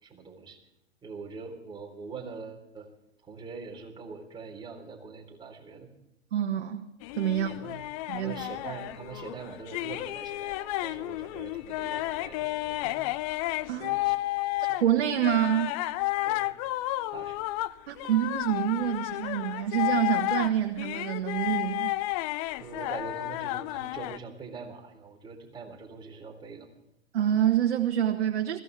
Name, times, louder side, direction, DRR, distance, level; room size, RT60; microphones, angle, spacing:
voice 1, 0.0-0.6 1.0-2.9 3.3-5.9 7.3-7.8 8.1-13.0 13.8-14.1 14.6-14.8 16.2-16.5 17.1-17.4 22.6-26.7, right 5 dB, 15° right, 3.8 m, -43 dB
voice 2, 6.3-6.9 7.1-7.5 8.1-8.4 13.7-13.9 14.8-15.8 17.9-21.9 27.1-28.6, right 10 dB, 65° right, 1.4 m, -27 dB
sound 1, 7.0-14.8 15.2-24.2, left 17 dB, 35° left, 0.6 m, -32 dB
21.0 x 16.0 x 3.4 m
hypercardioid pair, 115°, 33 cm